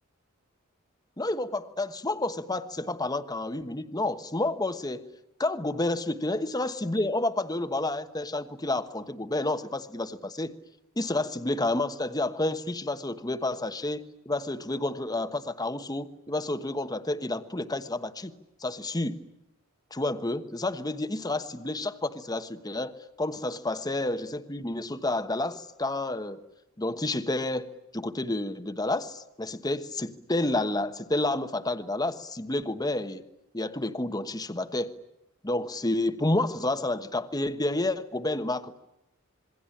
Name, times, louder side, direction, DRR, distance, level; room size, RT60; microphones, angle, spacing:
voice 1, 1.2-5.0 5.4-10.5 11.0-18.3 18.6-19.2 19.9-26.4 26.8-33.2 33.5-34.9 35.4-38.8, left 2 dB, 20° left, 10 dB, 1.2 m, -30 dB
27.0 x 22.0 x 10.0 m, 0.86 s
head